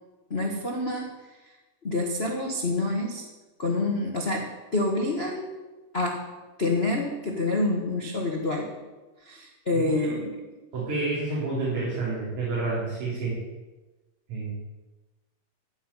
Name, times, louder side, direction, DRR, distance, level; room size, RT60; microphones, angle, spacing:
voice 1, 0.3-1.5 1.8-3.3 3.6-5.5 5.9-6.3 6.6-8.7 9.2-10.3, left 2 dB, 45° left, 0 dB, 0.7 m, -27 dB
voice 2, 10.7-13.4 14.3-14.5, right 3 dB, 70° right, -8 dB, 5.2 m, -29 dB
14.5 x 5.8 x 9.8 m, 1.2 s
omnidirectional pair, 3.7 m